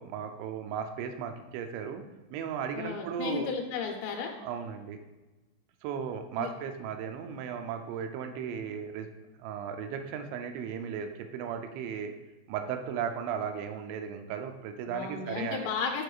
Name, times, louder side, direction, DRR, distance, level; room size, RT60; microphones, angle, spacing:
voice 1, 0.0-2.0 2.3-3.5 4.4-5.0 5.8-9.1 9.4-12.1 12.5-15.7, right 7 dB, 85° right, 6 dB, 2.6 m, -36 dB
voice 2, 2.7-4.3 6.4-6.5 14.9-16.0, left 5 dB, 85° left, 2 dB, 3.2 m, -34 dB
12.5 x 4.6 x 2.4 m, 1.1 s
omnidirectional pair, 5.8 m